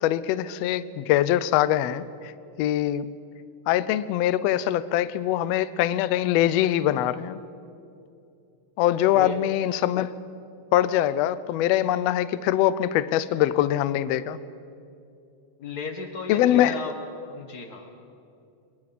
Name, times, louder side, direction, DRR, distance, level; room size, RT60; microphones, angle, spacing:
voice 1, 0.0-2.1 2.6-3.1 3.7-7.4 8.8-10.1 10.7-14.4 16.3-16.7, left 12 dB, 80° left, 15 dB, 1.4 m, -23 dB
voice 2, 9.1-9.4 15.6-17.0 17.2-18.1, left 4 dB, 45° left, 5 dB, 1.4 m, -35 dB
29.0 x 22.0 x 4.2 m, 2.6 s
omnidirectional pair, 3.6 m